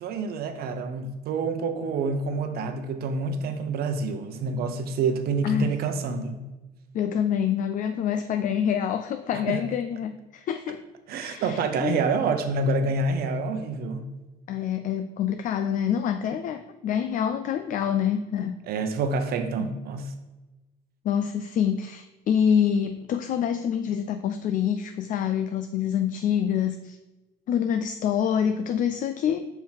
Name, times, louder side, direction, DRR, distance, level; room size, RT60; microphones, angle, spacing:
voice 1, 0.0-6.5 9.5-9.6 11.1-14.1 18.6-20.1, right 3 dB, 65° right, 7 dB, 0.8 m, -27 dB
voice 2, 6.9-10.8 11.2-12.0 14.5-18.6 19.6-19.7 21.0-27.0 27.5-29.5, left 8 dB, 50° left, 9 dB, 0.4 m, -26 dB
5.6 x 4.5 x 4.4 m, 1.1 s
cardioid pair, 110°, 17 cm